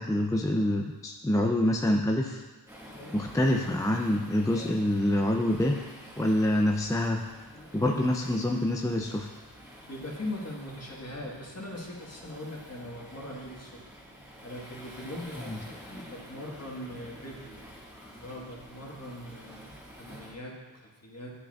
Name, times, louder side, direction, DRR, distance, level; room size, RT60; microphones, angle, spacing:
voice 1, 0.0-2.4 3.1-5.8 6.2-7.2 7.7-9.3 15.4-15.6, left 1 dB, 10° left, 1 dB, 0.4 m, -26 dB
Waves surf, 2.7-20.3, equal, 10° right, 1.7 m, -49 dB
voice 2, 7.5-7.9 9.8-13.8 14.4-17.6 18.1-21.3, left 1 dB, 35° left, -2 dB, 1.4 m, -41 dB
9.7 x 5.0 x 2.3 m, 1.2 s
wide cardioid pair, 80°, 41 cm